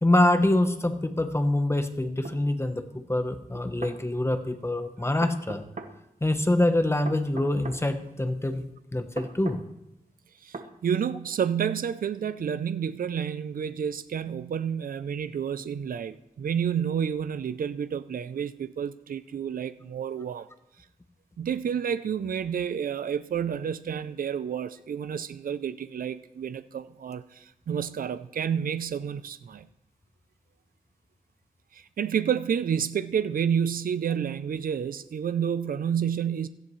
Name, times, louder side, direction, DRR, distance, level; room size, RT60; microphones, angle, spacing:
voice 1, 0.0-2.8 3.1-5.6 6.2-8.6 8.9-9.6, left 1 dB, 15° left, 0.9 m, -25 dB
sound 1, 2.2-2.4 3.5-4.0 5.2-5.9 7.1-7.8 9.2-9.6 10.5-10.7, right 4 dB, 55° right, 1.1 m, -39 dB
voice 2, 10.4-20.5 21.4-29.7 31.7-36.5, right 8 dB, 70° right, 0.5 m, -30 dB
17.0 x 14.0 x 3.2 m
wide cardioid pair, 100°, 15 cm